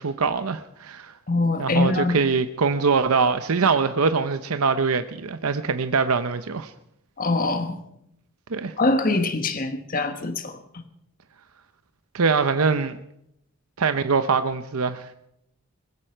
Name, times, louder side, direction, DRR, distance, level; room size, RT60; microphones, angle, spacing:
voice 1, 0.0-1.1 1.6-6.7 8.5-8.7 12.1-13.0 13.8-15.1, right 5 dB, 85° right, 0.7 m, -23 dB
voice 2, 1.3-2.2 7.2-7.8 8.8-10.8, left 2 dB, 40° left, 1.3 m, -24 dB
20.5 x 15.5 x 4.5 m
head